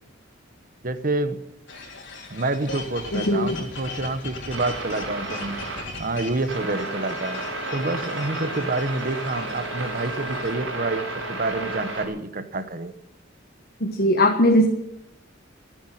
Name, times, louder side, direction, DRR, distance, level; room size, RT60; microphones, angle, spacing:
voice 1, 0.8-1.4 2.3-5.6 6.0-7.4 7.7-12.9, right 2 dB, 45° right, 12 dB, 1.1 m, -28 dB
sound 1, 1.7-10.5, left 3 dB, 65° left, 3.6 m, -39 dB
voice 2, 3.1-3.6 13.8-14.7, left 1 dB, 50° left, 4 dB, 1.4 m, -19 dB
sound 2, 4.5-5.8 6.5-12.1, right 2 dB, 90° right, 5.2 m, -32 dB
14.0 x 11.0 x 9.2 m, 0.80 s
head